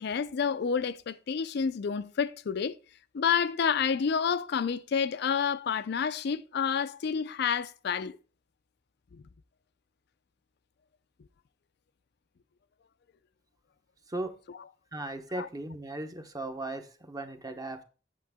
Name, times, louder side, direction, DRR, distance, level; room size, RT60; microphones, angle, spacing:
voice 1, 0.0-2.7 3.1-8.2 9.1-9.2 15.4-15.5, left 6 dB, 60° left, 0.4 m, -29 dB
voice 2, 14.9-17.8, right 2 dB, 20° right, 0.9 m, -37 dB
8.4 x 7.4 x 3.5 m
head